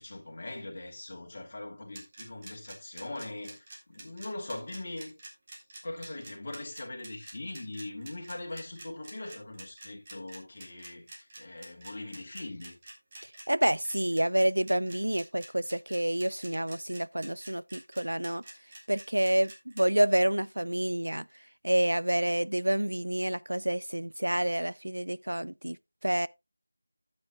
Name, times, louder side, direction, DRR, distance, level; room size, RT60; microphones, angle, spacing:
voice 1, 0.0-5.1 5.8-12.8, left 2 dB, 35° left, 2.8 m, -41 dB
sound 1, 1.9-19.9, right 2 dB, 25° right, 2.4 m, -47 dB
voice 2, 13.5-18.4 18.9-21.2 21.6-25.8 26.0-26.3, right 1 dB, 80° right, 0.5 m, -28 dB
13.0 x 8.8 x 2.3 m
figure-of-eight pair, 170°, 0 cm